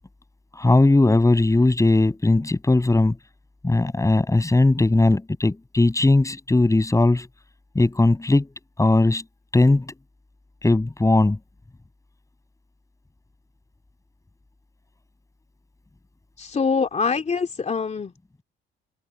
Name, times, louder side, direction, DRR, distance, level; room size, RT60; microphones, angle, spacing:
voice 1, 0.6-3.2 3.6-7.3 7.7-8.5 8.8-9.2 9.5-9.9 10.6-11.4, left 2 dB, 15° left, 7.7 m, -18 dB
voice 2, 16.4-18.1, left 5 dB, 35° left, 3.1 m, -24 dB
cardioid pair, 90°, 20 cm